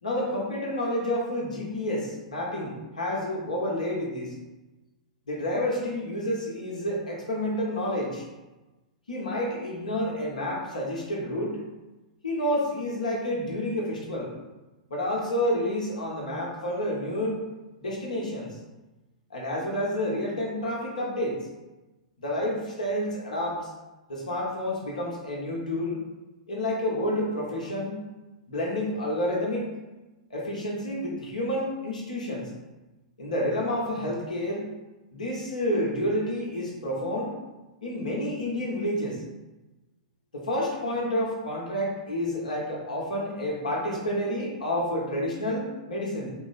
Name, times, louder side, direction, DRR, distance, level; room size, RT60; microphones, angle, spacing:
voice 1, 0.0-4.3 5.3-8.2 9.1-11.6 12.2-14.3 14.9-17.4 17.8-18.6 19.3-21.4 22.2-23.7 24.1-26.0 26.5-28.0 28.5-29.7 30.3-32.5 33.2-34.6 35.1-37.3 37.8-39.2 40.3-46.3, left 1 dB, 80° left, -2 dB, 1.1 m, -29 dB
4.3 x 2.1 x 4.0 m, 1.1 s
hypercardioid pair, 110°, 4 cm